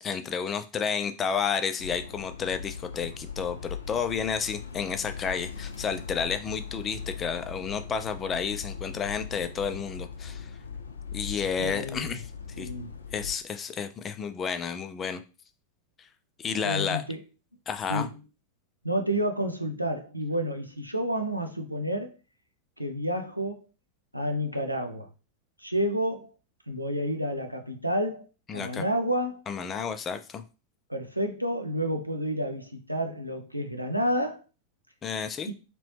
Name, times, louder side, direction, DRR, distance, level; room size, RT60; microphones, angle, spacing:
voice 1, 0.0-10.5 11.1-12.3 12.6-12.7 13.1-15.2 16.4-17.0 17.7-18.1 28.5-28.8 29.5-30.4 35.0-35.5, left 6 dB, 25° left, 0.4 m, -31 dB
sound 1, 1.8-13.3, left 6 dB, 75° left, 0.6 m, -40 dB
voice 2, 11.6-12.1 12.6-12.9 16.6-17.2 17.9-18.2 18.8-22.1 22.8-23.6 24.1-25.1 25.6-26.3 26.7-28.2 28.5-29.4 30.9-34.4, equal, 90° right, 0.5 m, -30 dB
2.9 x 2.9 x 3.2 m
figure-of-eight pair, 90°, 0 cm